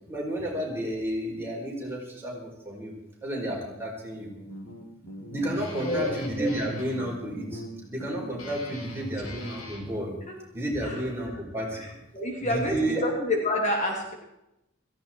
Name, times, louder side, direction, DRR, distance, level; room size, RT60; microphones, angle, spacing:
voice 1, 0.1-2.9 3.2-4.3 5.3-7.6 7.9-10.2 10.5-11.8 12.4-13.0, right 1 dB, 10° right, -3 dB, 4.9 m, -31 dB
Guitar, 4.1-9.9, equal, 85° left, 3.7 m, -41 dB
voice 2, 5.7-6.1 10.3-10.4 10.8-11.0 11.8-14.1, left 1 dB, 35° left, 1 dB, 2.8 m, -28 dB
17.0 x 15.0 x 4.6 m, 0.87 s
head